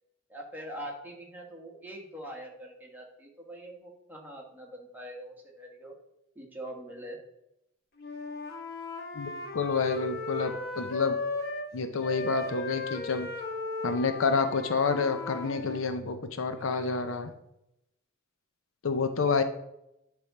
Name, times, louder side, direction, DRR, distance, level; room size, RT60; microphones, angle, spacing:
voice 1, 0.3-5.9 6.3-7.2, right 1 dB, 10° right, -1 dB, 1.5 m, -43 dB
Wind instrument woodwind instrument, 8.0-11.7 12.0-15.9, left 3 dB, 55° left, 1.1 m, -36 dB
voice 2, 9.1-11.2 11.7-13.3 13.8-17.3 18.8-19.4, left 4 dB, 70° left, 9 dB, 0.6 m, -29 dB
9.7 x 3.6 x 4.2 m, 0.83 s
head